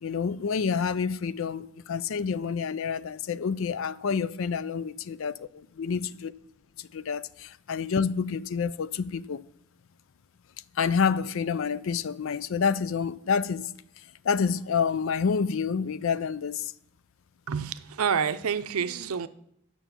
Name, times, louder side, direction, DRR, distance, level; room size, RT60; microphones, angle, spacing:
voice 1, 0.0-5.5 5.8-6.3 6.8-9.4 10.8-13.7 14.2-16.7, left 6 dB, 65° left, 0.4 m, -28 dB
voice 2, 17.5-19.3, right 6 dB, 90° right, 0.5 m, -28 dB
9.0 x 6.1 x 7.0 m
head